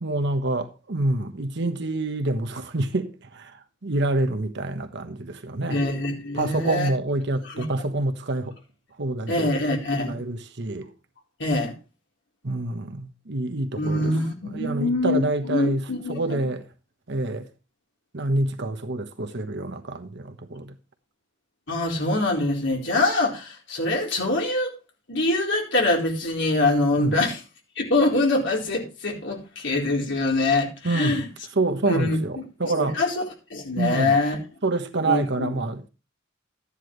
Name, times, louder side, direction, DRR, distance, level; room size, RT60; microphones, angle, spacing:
voice 1, 0.0-3.5 3.8-5.8 6.3-8.5 9.0-9.5 10.1-10.9 12.4-14.1 14.4-15.8 16.1-16.6 17.1-17.5 18.1-20.7 27.0-27.2 30.8-31.2 31.6-33.0 33.8-34.2 34.6-35.9, right 2 dB, 60° right, 1.2 m, -27 dB
voice 2, 5.7-6.9 7.4-7.6 9.3-10.2 11.4-11.7 13.8-16.5 21.7-24.7 25.1-27.4 27.8-31.3 31.8-32.2 32.6-33.2 33.5-34.4 35.0-35.5, left 2 dB, 65° left, 4.0 m, -24 dB
12.5 x 9.9 x 3.2 m
head